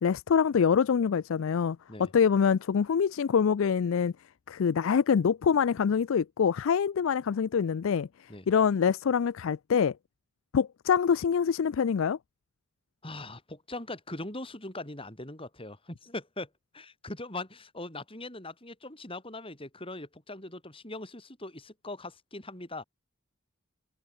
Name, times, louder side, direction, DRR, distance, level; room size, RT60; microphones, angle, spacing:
voice 1, 0.0-4.1 4.5-9.9 10.5-12.2, left 7 dB, 65° left, 0.4 m, -25 dB
voice 2, 13.0-16.5 16.7-22.8, left 2 dB, 25° left, 5.8 m, -41 dB
head